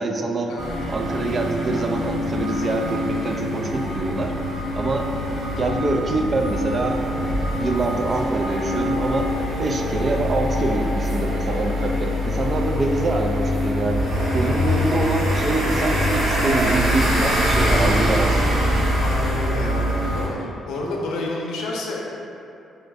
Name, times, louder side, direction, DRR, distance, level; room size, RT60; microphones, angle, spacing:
voice 1, 0.0-0.5 0.9-4.3 4.7-5.1 5.5-7.0 7.6-9.3 9.6-14.0 14.3-18.6, right 2 dB, 40° right, 3 dB, 0.3 m, -25 dB
sound 1, 0.6-20.3, equal, 90° right, 1.2 m, -23 dB
voice 2, 19.0-22.0, left 2 dB, 90° left, -2 dB, 0.5 m, -30 dB
3.9 x 2.5 x 3.3 m, 2.7 s
cardioid pair, 90°, 0 cm